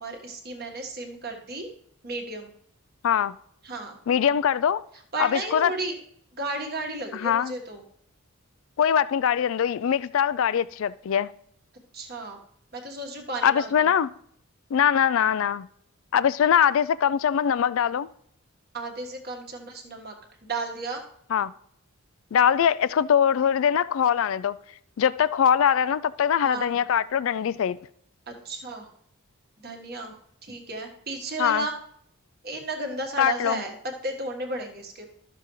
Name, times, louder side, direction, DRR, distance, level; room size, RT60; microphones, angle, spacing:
voice 1, 0.0-1.7 2.0-2.5 3.6-4.0 5.1-6.0 6.4-7.8 11.9-12.4 12.7-13.7 18.7-20.1 20.4-21.0 26.4-26.7 28.3-28.9 29.6-30.1 30.4-31.7 32.4-33.7 34.0-35.1, right 2 dB, 45° right, 1.6 m, -33 dB
voice 2, 4.1-4.8 5.2-5.7 7.1-7.5 8.8-11.3 13.4-14.1 14.7-15.7 16.1-18.1 21.3-21.5 22.3-24.6 25.0-27.8 31.4-31.7 33.2-33.6, left 8 dB, 65° left, 0.3 m, -22 dB
12.5 x 6.8 x 3.1 m
head